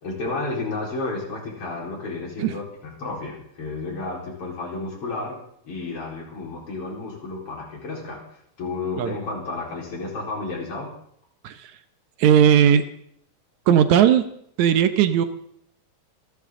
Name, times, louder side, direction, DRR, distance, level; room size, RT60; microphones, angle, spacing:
voice 1, 0.0-5.4 5.6-8.2 8.6-10.9, left 3 dB, 45° left, -2 dB, 5.2 m, -31 dB
voice 2, 12.2-12.8 13.7-14.3 14.6-15.3, right 9 dB, 75° right, 10 dB, 2.2 m, -17 dB
27.5 x 12.0 x 3.8 m, 0.67 s
omnidirectional pair, 3.5 m